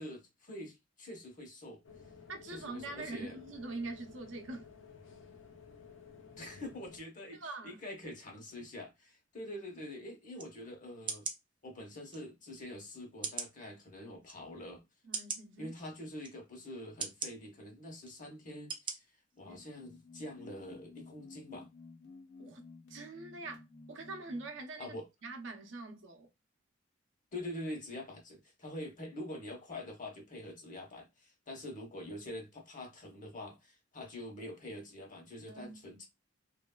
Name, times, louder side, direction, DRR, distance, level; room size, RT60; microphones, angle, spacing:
voice 1, 0.0-1.8 2.5-3.4 6.4-11.3 11.6-14.8 15.6-19.0 19.4-21.7 23.4-23.5 24.8-25.1 27.3-36.0, left 1 dB, 45° left, 1.1 m, -45 dB
sound 1, 1.8-7.0, left 6 dB, 80° left, 0.6 m, -54 dB
voice 2, 2.3-4.7 7.3-7.8 15.0-15.8 19.5-19.6 22.4-22.6 22.9-25.0 25.2-26.3 35.4-36.0, right 3 dB, 70° right, 0.7 m, -44 dB
sound 2, 10.4-10.5 11.1-11.4 12.1-12.2 13.2-13.5 14.2-14.3 15.1-15.4 16.2-16.3 17.0-17.3 18.0-18.2 18.7-18.9 19.4-19.5, right 5 dB, 25° right, 0.5 m, -38 dB
sound 3, 19.4-24.6, left 3 dB, 65° left, 1.1 m, -54 dB
3.0 x 2.6 x 2.3 m
head